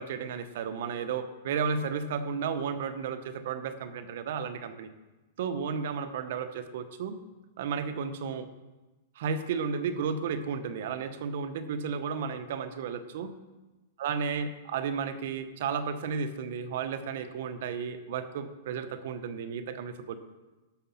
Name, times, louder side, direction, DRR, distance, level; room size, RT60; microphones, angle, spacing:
voice 1, 0.0-4.9 5.4-7.2 7.6-8.5 9.1-13.3 14.0-20.2, right 6 dB, 60° right, 10 dB, 1.0 m, -33 dB
11.5 x 6.7 x 5.8 m, 1.1 s
hypercardioid pair, 150°, 0 cm